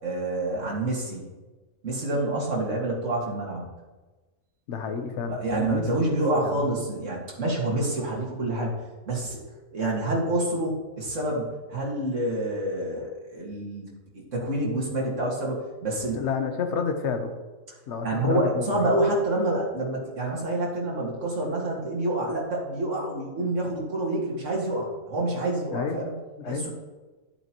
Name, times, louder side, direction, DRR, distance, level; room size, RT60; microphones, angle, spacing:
voice 1, 0.0-1.3 1.8-3.7 5.3-8.8 9.1-9.4 9.7-16.3 18.0-26.1 26.5-26.7, right 1 dB, 60° right, -3 dB, 2.3 m, -28 dB
voice 2, 4.7-5.8 6.1-6.6 16.1-17.3 17.9-19.0 25.7-26.0 26.4-26.7, left 6 dB, 60° left, 6 dB, 1.1 m, -30 dB
11.0 x 7.9 x 3.0 m, 1.2 s
omnidirectional pair, 1.4 m